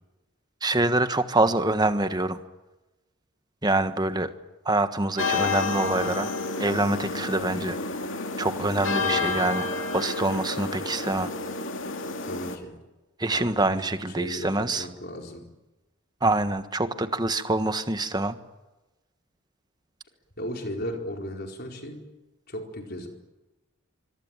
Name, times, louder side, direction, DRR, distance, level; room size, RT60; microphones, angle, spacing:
voice 1, 0.6-2.4 3.6-4.3 4.6-6.3 6.6-7.8 8.4-9.7 9.9-11.3 13.2-14.8 16.2-18.4, right 2 dB, 20° right, 9 dB, 1.4 m, -25 dB
sound 1, 5.2-12.6, left 3 dB, 65° left, 2.6 m, -30 dB
voice 2, 9.0-9.4 12.2-12.8 13.3-15.5 20.4-22.0 22.5-23.1, equal, 50° left, 3 dB, 4.6 m, -36 dB
25.5 x 22.5 x 9.1 m, 1.1 s
head